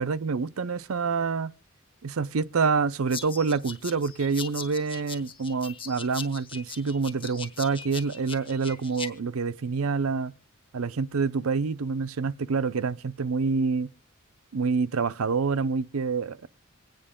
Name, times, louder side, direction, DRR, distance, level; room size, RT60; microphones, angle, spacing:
voice 1, 0.0-1.5 2.0-10.3 10.7-13.9 14.5-16.5, right 4 dB, 85° right, 0.6 m, -27 dB
sound 1, 3.1-9.1, left 6 dB, 25° left, 1.1 m, -40 dB
26.0 x 9.1 x 3.7 m
head